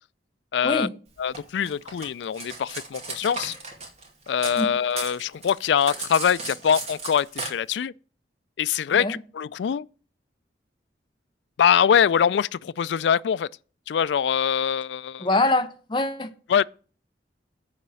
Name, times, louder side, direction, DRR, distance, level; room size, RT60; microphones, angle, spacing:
voice 1, 0.5-0.9 1.2-3.5 4.3-7.9 8.6-9.8 11.6-13.5 13.9-15.3 16.5-16.6, left 8 dB, 75° left, 0.3 m, -23 dB
Cutlery silverware, 1.3-4.6 4.9-7.5, right 3 dB, 35° right, 2.2 m, -35 dB
voice 2, 15.2-16.3, left 2 dB, 25° left, 0.8 m, -24 dB
10.0 x 4.2 x 6.9 m
head